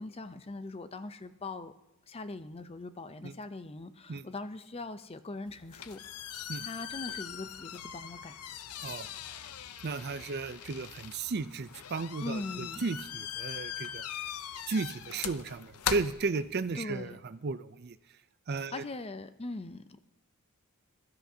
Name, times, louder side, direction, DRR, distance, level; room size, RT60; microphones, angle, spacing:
voice 1, 0.0-1.7 2.1-6.0 6.3-8.4 12.2-12.8 16.7-17.2 18.5-20.0, left 2 dB, 25° left, 11 dB, 0.6 m, -41 dB
sound 1, 5.5-16.9, left 9 dB, 85° left, 0.6 m, -41 dB
voice 2, 9.8-14.0 14.7-18.0 18.5-18.8, right 4 dB, 45° right, 13 dB, 0.5 m, -34 dB
22.0 x 12.5 x 2.8 m, 0.92 s
head